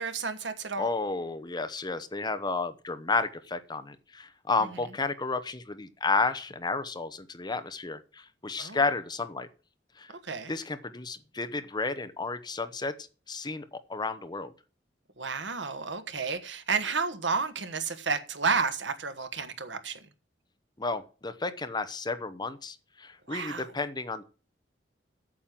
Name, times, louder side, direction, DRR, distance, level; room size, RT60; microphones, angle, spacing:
voice 1, 0.0-0.9 8.6-8.8 10.1-10.5 15.2-20.0 23.3-23.7, right 5 dB, 80° right, 1.4 m, -31 dB
voice 2, 0.8-9.5 10.0-10.1 10.5-12.9 13.3-14.5 20.8-24.2, left 3 dB, 25° left, 0.8 m, -32 dB
8.6 x 7.5 x 7.5 m
head